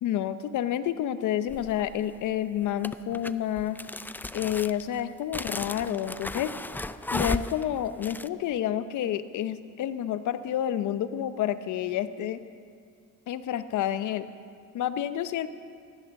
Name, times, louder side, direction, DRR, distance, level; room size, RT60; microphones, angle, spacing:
voice 1, 0.0-3.8 4.3-6.5 7.1-12.4 13.3-14.3 14.7-15.5, left 11 dB, 75° left, 12 dB, 0.7 m, -29 dB
sound 1, 1.5-2.0 2.8-8.3, left 2 dB, 5° left, 0.3 m, -35 dB
15.0 x 11.5 x 6.5 m, 2.3 s
cardioid pair, 90°, 30 cm